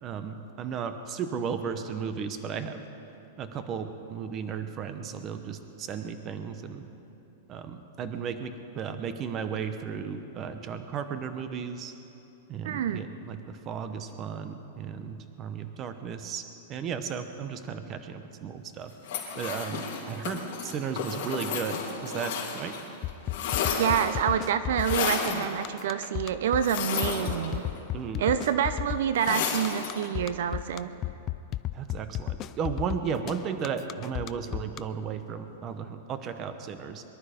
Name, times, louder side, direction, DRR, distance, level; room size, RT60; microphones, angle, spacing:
voice 1, 0.0-2.8 3.4-6.9 7.5-11.9 12.5-16.4 16.7-18.9 19.4-22.7 27.9-28.4 31.7-37.0, right 7 dB, 20° right, 9 dB, 0.8 m, -35 dB
voice 2, 12.6-13.0 23.8-27.6 28.2-30.9, right 9 dB, 60° right, 12 dB, 0.6 m, -27 dB
sound 1, 19.0-22.8 23.1-24.3 24.8-25.4 26.6-27.8 29.2-30.0, left 6 dB, 50° left, 3.3 m, -32 dB
sound 2, 23.0-34.8, left 13 dB, 25° left, 0.3 m, -33 dB
23.0 x 11.5 x 5.1 m, 2.9 s
supercardioid pair, 170°, 0 cm